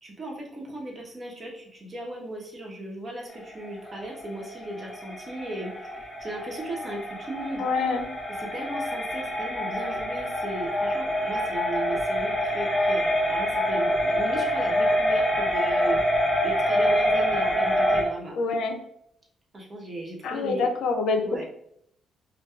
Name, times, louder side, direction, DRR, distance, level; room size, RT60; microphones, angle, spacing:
voice 1, 0.0-7.7 8.3-18.4 19.5-20.7 21.2-21.4, right 1 dB, 35° right, -1 dB, 1.0 m, -37 dB
sound 1, 3.3-18.0, equal, ahead, 0.9 m, -26 dB
voice 2, 7.6-8.1 18.4-18.8 20.2-21.2, left 4 dB, 75° left, 5 dB, 0.5 m, -25 dB
4.3 x 2.2 x 2.4 m, 0.74 s
cardioid pair, 90°, 0 cm